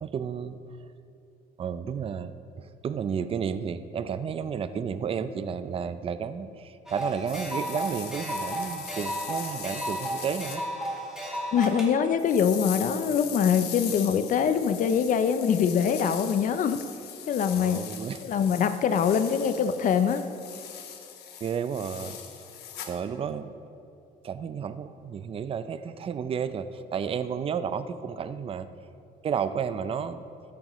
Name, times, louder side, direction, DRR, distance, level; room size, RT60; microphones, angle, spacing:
voice 1, 0.0-0.6 1.6-2.3 2.6-10.6 17.6-18.2 21.4-22.2 22.9-23.5 24.2-28.7 29.2-30.2, right 7 dB, 35° right, 12 dB, 0.5 m, -32 dB
sound 1, 6.9-11.9, right 1 dB, 5° right, 2.1 m, -33 dB
sound 2, 7.3-10.6 12.2-22.9, left 9 dB, 75° left, 1.2 m, -40 dB
voice 2, 11.5-16.8 17.3-17.9 18.2-20.2, left 7 dB, 50° left, 10 dB, 0.6 m, -24 dB
14.5 x 10.5 x 3.1 m, 2.6 s
cardioid pair, 110°, 17 cm